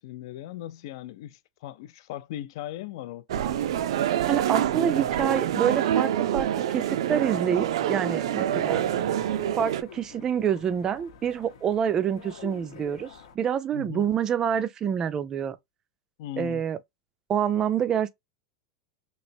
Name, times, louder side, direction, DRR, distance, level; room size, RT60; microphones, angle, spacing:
voice 1, 0.0-3.7 8.5-8.9 13.7-14.1 16.2-16.6, left 13 dB, 60° left, 0.5 m, -39 dB
sound 1, 3.3-9.8, right 11 dB, 85° right, 0.4 m, -26 dB
voice 2, 4.3-8.8 9.6-13.1 13.3-15.6 16.4-16.8 17.3-18.1, right 8 dB, 20° right, 0.4 m, -27 dB
sound 2, 7.7-13.3, left 8 dB, 75° left, 0.8 m, -47 dB
3.2 x 2.9 x 2.7 m
supercardioid pair, 165°, 3 cm